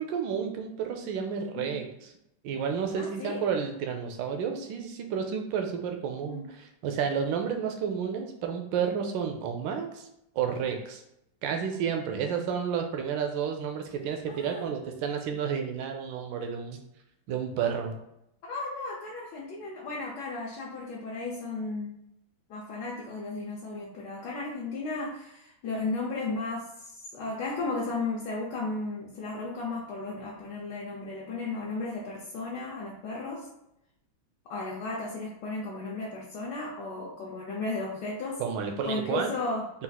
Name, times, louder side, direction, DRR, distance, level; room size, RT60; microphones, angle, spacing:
voice 1, 0.0-2.1 2.4-10.1 10.4-11.0 11.4-16.8 17.3-17.9 38.4-39.4, right 7 dB, 75° right, 4 dB, 1.3 m, -31 dB
voice 2, 1.5-1.9 2.9-3.5 6.2-6.5 14.3-14.8 18.5-21.9 22.5-33.5 34.5-38.4 38.8-39.7, left 3 dB, 70° left, -3 dB, 1.2 m, -35 dB
4.1 x 2.5 x 3.9 m, 0.83 s
omnidirectional pair, 2.1 m